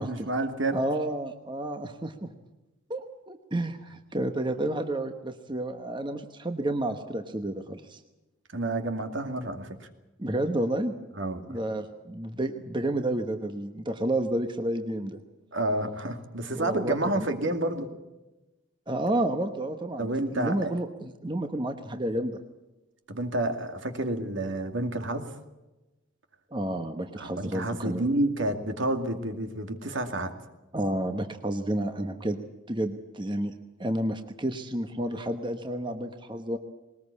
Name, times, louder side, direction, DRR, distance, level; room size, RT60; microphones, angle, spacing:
voice 1, 0.0-0.8 8.5-9.7 11.2-11.4 15.5-17.9 20.0-20.7 23.1-25.3 27.2-30.3, right 1 dB, 65° right, 6 dB, 2.4 m, -29 dB
voice 2, 0.7-2.3 2.9-8.0 10.2-10.9 11.5-15.2 16.5-17.3 18.9-22.4 26.5-28.0 30.7-32.4 32.7-33.5 33.8-36.6, right 1 dB, 25° right, 6 dB, 1.1 m, -30 dB
20.5 x 19.5 x 8.4 m, 1.0 s
head